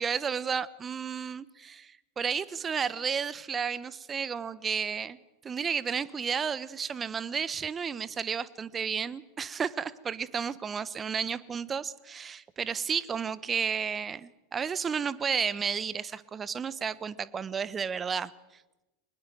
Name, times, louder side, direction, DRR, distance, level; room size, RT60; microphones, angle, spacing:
voice 1, 0.0-5.2 5.4-18.3, right 6 dB, 25° right, 18 dB, 1.1 m, -32 dB
23.5 x 20.5 x 7.9 m, 1.0 s
figure-of-eight pair, 85°, 0 cm